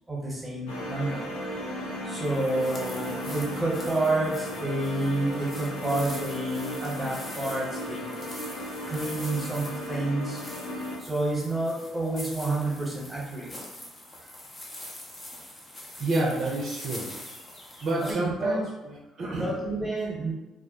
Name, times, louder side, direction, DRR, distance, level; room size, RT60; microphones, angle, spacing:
voice 1, 0.1-1.2 2.0-8.0 8.9-10.4 11.0-13.5 18.0-18.6 19.3-20.3, right 2 dB, 15° right, -3 dB, 1.0 m, -29 dB
sound 1, 0.7-11.0, equal, 85° left, 0.5 m, -35 dB
sound 2, 2.2-18.1, left 1 dB, 30° left, 0.7 m, -44 dB
voice 2, 16.0-17.1 17.8-19.5, right 2 dB, 60° right, -3 dB, 0.4 m, -29 dB
2.2 x 2.0 x 2.8 m, 1.0 s
hypercardioid pair, 55°, 0 cm